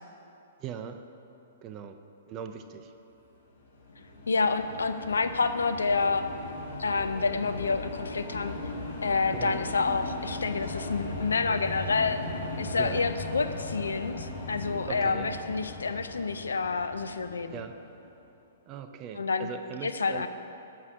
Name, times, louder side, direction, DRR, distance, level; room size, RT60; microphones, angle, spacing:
voice 1, 0.6-1.1 1.6-2.9 9.3-9.7 12.8-13.1 14.9-15.4 17.5-17.8 18.7-20.3, right 7 dB, 30° right, 7 dB, 0.4 m, -40 dB
sound 1, 3.6-18.1, left 2 dB, 70° left, 1.5 m, -38 dB
voice 2, 4.3-6.2 6.8-8.6 9.0-12.3 12.6-17.5 19.2-19.5 19.8-20.3, left 4 dB, 85° left, 10 dB, 0.4 m, -28 dB
6.4 x 5.7 x 6.0 m, 2.8 s
hypercardioid pair, 125°, 0 cm